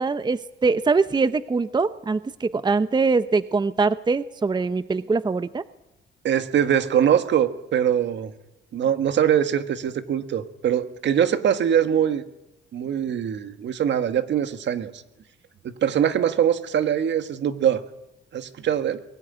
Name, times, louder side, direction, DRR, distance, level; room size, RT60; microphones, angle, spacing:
voice 1, 0.0-5.6, right 4 dB, 20° right, 13 dB, 0.7 m, -23 dB
voice 2, 6.2-8.3 8.7-12.2 12.7-14.9 15.6-17.8 18.3-19.0, right 9 dB, 65° right, 9 dB, 1.7 m, -22 dB
22.0 x 14.0 x 9.7 m, 0.92 s
cardioid pair, 90°, 20 cm